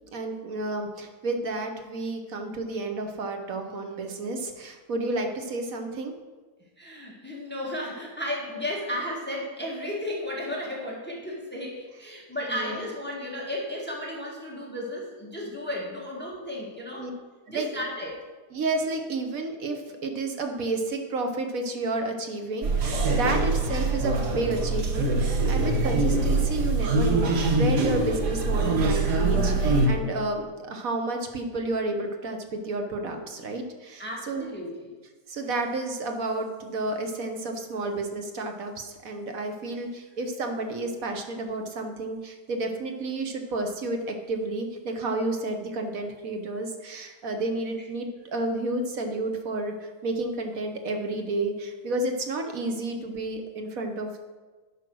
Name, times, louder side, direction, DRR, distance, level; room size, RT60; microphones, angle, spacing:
voice 1, 0.1-6.1 12.5-12.8 17.0-17.1 17.5-17.7 18.5-34.5 35.3-49.7 50.0-54.2, right 2 dB, 60° right, 4 dB, 1.4 m, -31 dB
voice 2, 6.8-17.1 17.5-18.2 34.0-34.9, left 1 dB, 5° left, -3 dB, 1.7 m, -34 dB
sound 1, 22.6-29.9, right 3 dB, 85° right, 1.8 m, -24 dB
10.5 x 5.6 x 6.2 m, 1.3 s
omnidirectional pair, 1.7 m